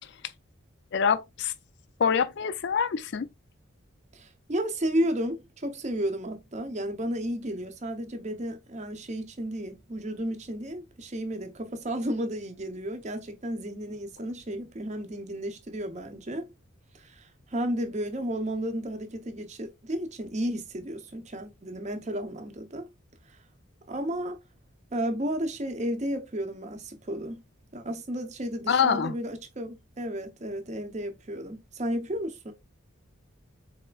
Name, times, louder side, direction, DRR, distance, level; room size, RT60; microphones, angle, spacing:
voice 1, 0.9-1.5 2.0-3.3 28.7-29.2, left 6 dB, 55° left, 0.4 m, -25 dB
voice 2, 4.1-16.5 16.9-22.9 23.3-23.4 23.9-24.4 24.9-27.4 27.7-32.5, equal, 35° right, 0.6 m, -33 dB
4.2 x 3.3 x 2.2 m
head